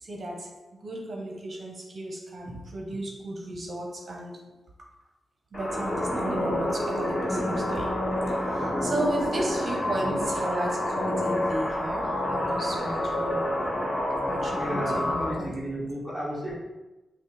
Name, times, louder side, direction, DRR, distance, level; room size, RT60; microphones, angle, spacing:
voice 1, 0.0-4.5 5.5-13.5 14.2-15.5, right 1 dB, 45° right, -1 dB, 0.7 m, -34 dB
sound 1, 5.5-15.3, left 1 dB, 25° left, 1.2 m, -28 dB
voice 2, 14.6-16.5, equal, 10° left, -6 dB, 1.4 m, -32 dB
5.4 x 2.1 x 3.1 m, 1.1 s
cardioid pair, 95°, 0 cm